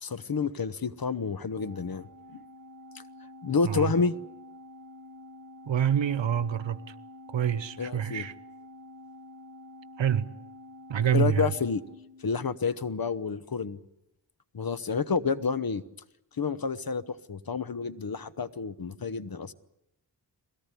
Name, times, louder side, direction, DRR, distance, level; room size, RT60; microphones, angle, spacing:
voice 1, 0.0-2.4 3.4-4.1 7.8-8.3 11.1-11.8 12.2-13.8 14.5-15.8 16.4-19.5, left 5 dB, 55° left, 1.1 m, -29 dB
Organ, 1.5-12.8, left 1 dB, 45° right, 1.7 m, -49 dB
voice 2, 5.7-6.9 7.3-8.3 10.0-10.3 10.9-11.5, right 9 dB, 85° right, 1.0 m, -26 dB
21.5 x 17.5 x 9.9 m
wide cardioid pair, 60°, 44 cm